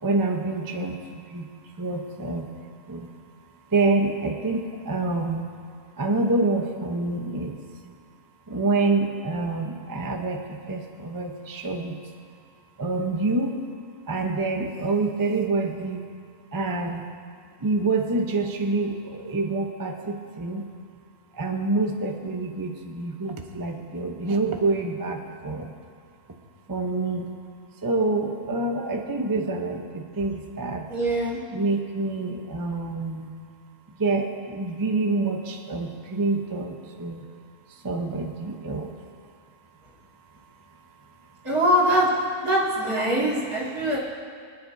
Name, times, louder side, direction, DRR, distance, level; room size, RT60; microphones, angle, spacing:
voice 1, 0.0-1.0 1.3-1.5 1.8-2.5 2.9-3.1 3.7-5.4 6.0-7.6 8.5-11.9 12.8-13.6 14.1-16.0 16.5-17.0 17.6-20.7 21.3-25.7 26.7-27.3 27.8-30.9 31.5-33.3 34.0-37.2 37.8-38.9, right 3 dB, 20° right, 3 dB, 0.5 m, -27 dB
voice 2, 30.9-31.4 41.4-42.1 42.4-44.0, right 1 dB, 70° right, -6 dB, 2.8 m, -22 dB
24.5 x 9.5 x 2.7 m, 2.1 s
omnidirectional pair, 1.6 m